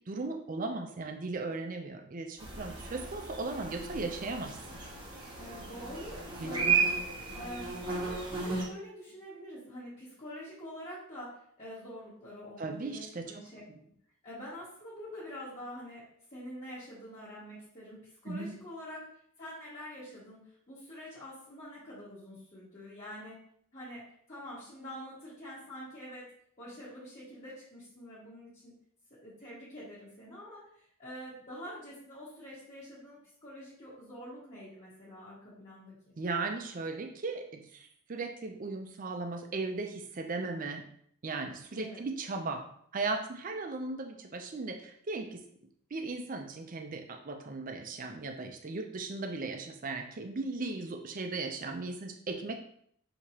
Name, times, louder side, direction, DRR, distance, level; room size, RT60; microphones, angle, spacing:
voice 1, 0.1-4.8 6.4-6.8 12.6-13.4 13.7-13.8 18.3-18.5 36.2-40.9 41.2-42.6 42.9-45.4 45.9-52.6, right 3 dB, 35° right, 5 dB, 0.5 m, -37 dB
sound 1, 2.4-8.6, right 4 dB, 20° right, 1.1 m, -34 dB
voice 2, 5.4-6.8 7.3-13.9 14.2-19.1 19.4-23.4 23.7-26.3 26.6-28.7 29.2-36.1 41.7-42.0, equal, 30° left, -10 dB, 1.3 m, -46 dB
6.1 x 2.9 x 2.9 m, 0.66 s
head